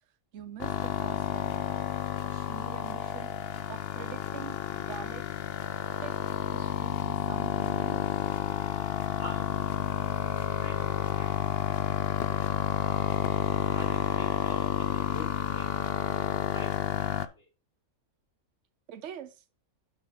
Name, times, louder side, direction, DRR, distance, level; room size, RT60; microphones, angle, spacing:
voice 1, 0.3-5.3 6.0-6.1 6.5-8.1 18.9-19.4, right 9 dB, 65° right, 1.1 m, -45 dB
sound 1, 0.6-17.3, left 10 dB, 65° left, 0.6 m, -30 dB
voice 2, 9.2-10.3 10.6-13.2 13.7-15.8 16.5-17.5, left 1 dB, 45° left, 1.6 m, -46 dB
6.6 x 6.3 x 3.7 m
omnidirectional pair, 1.4 m